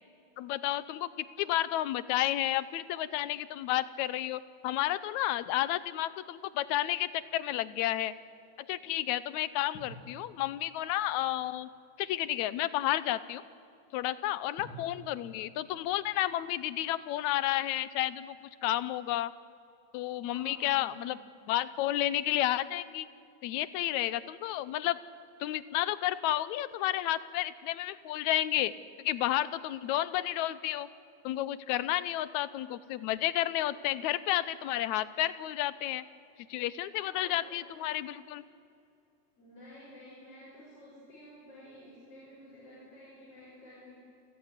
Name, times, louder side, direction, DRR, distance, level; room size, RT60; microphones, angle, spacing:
voice 1, 0.4-8.1 8.7-11.7 12.0-13.4 13.9-19.3 19.9-21.2 21.5-23.1 23.4-25.0 25.4-28.7 29.0-30.9 31.2-36.0 36.5-38.4, left 14 dB, 85° left, 16 dB, 2.1 m, -31 dB
sound 1, 7.0-8.0 9.7-12.1 14.6-17.6, right 1 dB, 35° left, 4.0 m, -54 dB
voice 2, 20.2-21.1 36.9-37.6 39.4-44.0, left 1 dB, 50° left, -8 dB, 7.8 m, -52 dB
28.5 x 14.5 x 9.8 m, 2.6 s
omnidirectional pair, 3.3 m